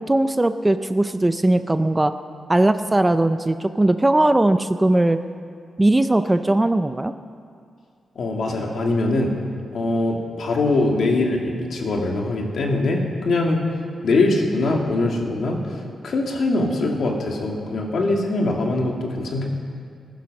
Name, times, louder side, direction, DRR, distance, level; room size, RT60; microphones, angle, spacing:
voice 1, 0.0-2.1 2.5-5.2 5.8-7.1, right 1 dB, 15° right, 10 dB, 0.4 m, -19 dB
voice 2, 8.2-9.3 9.7-13.6 14.0-19.5, left 2 dB, 60° left, 0 dB, 2.2 m, -22 dB
20.5 x 10.5 x 6.5 m, 2.3 s
wide cardioid pair, 140°, 0 cm